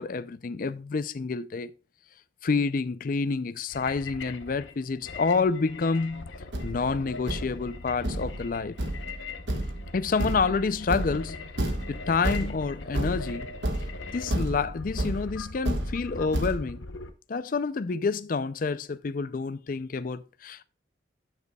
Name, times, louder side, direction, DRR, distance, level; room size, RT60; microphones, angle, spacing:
voice 1, 0.0-1.7 2.4-6.3 6.6-8.8 9.9-11.5 11.9-13.5 13.8-16.8 17.3-20.6, left 4 dB, 45° left, 0.4 m, -28 dB
sound 1, 3.7-17.1, left 4 dB, 90° left, 0.9 m, -41 dB
Thump thud, 6.1-6.2 6.5-16.6, right 1 dB, 70° right, 1.5 m, -32 dB
12.0 x 6.7 x 2.3 m
head